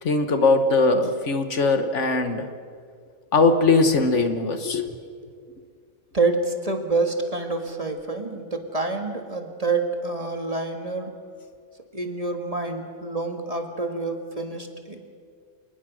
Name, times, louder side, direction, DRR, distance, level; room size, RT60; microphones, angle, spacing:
voice 1, 0.0-2.5 3.3-4.9, left 3 dB, 60° left, 8 dB, 1.6 m, -20 dB
voice 2, 4.9-5.3 6.1-11.1 11.9-15.0, right 3 dB, 25° right, 4 dB, 1.8 m, -27 dB
27.0 x 20.0 x 6.3 m, 2.1 s
omnidirectional pair, 1.4 m